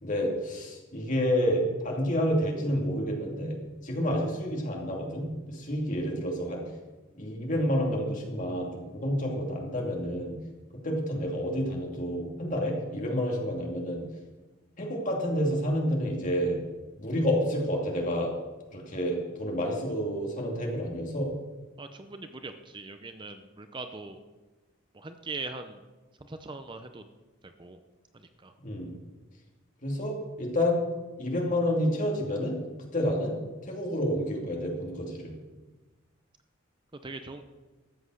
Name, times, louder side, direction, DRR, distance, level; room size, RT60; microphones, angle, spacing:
voice 1, 0.0-3.6 3.8-6.6 7.2-10.4 10.8-14.0 14.8-16.6 17.0-18.3 18.7-21.3 28.6-28.9 29.8-30.8 31.2-32.5 32.9-33.4 33.6-35.3, equal, 40° left, -1 dB, 2.7 m, -29 dB
voice 2, 21.8-24.2 24.9-25.8 26.2-27.0 27.4-27.8 28.1-28.5 37.0-37.4, right 3 dB, 25° right, 8 dB, 0.6 m, -41 dB
13.5 x 7.8 x 6.4 m, 1.2 s
head